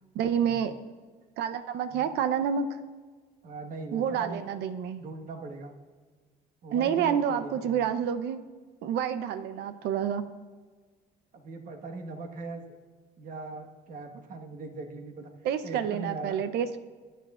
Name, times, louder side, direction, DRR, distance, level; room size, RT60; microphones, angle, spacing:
voice 1, 0.1-0.8 1.4-2.8 3.9-5.0 6.7-8.4 8.8-10.3 15.4-16.8, right 8 dB, 80° right, 11 dB, 0.8 m, -28 dB
voice 2, 3.4-4.4 4.9-5.7 6.6-7.8 11.3-12.6 13.2-15.3 15.6-16.3, right 3 dB, 55° right, 3 dB, 1.5 m, -40 dB
23.0 x 9.3 x 2.5 m, 1.4 s
cardioid pair, 110°, 17 cm